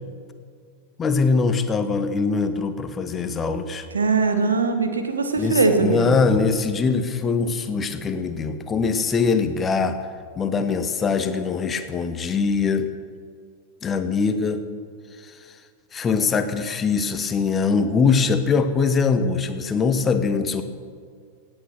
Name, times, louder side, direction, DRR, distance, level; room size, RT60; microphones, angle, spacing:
voice 1, 1.0-3.9 5.4-10.0 10.4-12.9 13.8-14.6 15.9-20.6, left 5 dB, 20° left, 9 dB, 1.1 m, -22 dB
voice 2, 3.9-6.2, right 4 dB, 75° right, 6 dB, 1.5 m, -21 dB
17.0 x 8.9 x 6.3 m, 2.1 s
figure-of-eight pair, 90°, 0 cm